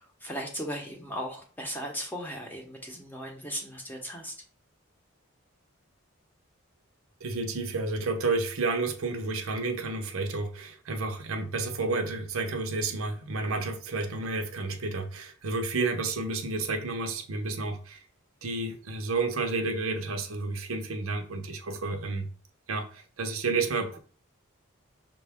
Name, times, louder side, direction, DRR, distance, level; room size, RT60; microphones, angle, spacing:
voice 1, 0.0-4.3, equal, 10° left, 0.8 m, -37 dB
voice 2, 7.2-18.0 18.4-22.3 22.7-24.0, right 3 dB, 85° right, 0.7 m, -31 dB
5.2 x 2.3 x 3.4 m
head